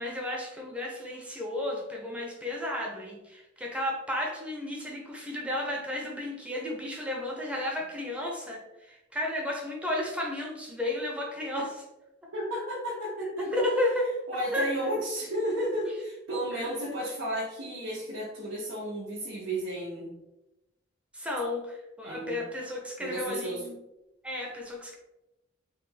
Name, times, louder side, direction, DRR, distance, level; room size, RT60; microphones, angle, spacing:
voice 1, 0.0-11.8 13.4-14.1 14.5-14.7 15.8-15.9 16.5-16.7 21.1-23.8 24.2-24.9, left 1 dB, 5° right, -1 dB, 0.6 m, -33 dB
voice 2, 12.3-13.6 14.3-20.1 22.0-22.4 23.0-23.6, right 1 dB, 90° right, -5 dB, 0.8 m, -33 dB
3.3 x 2.2 x 3.3 m, 0.95 s
head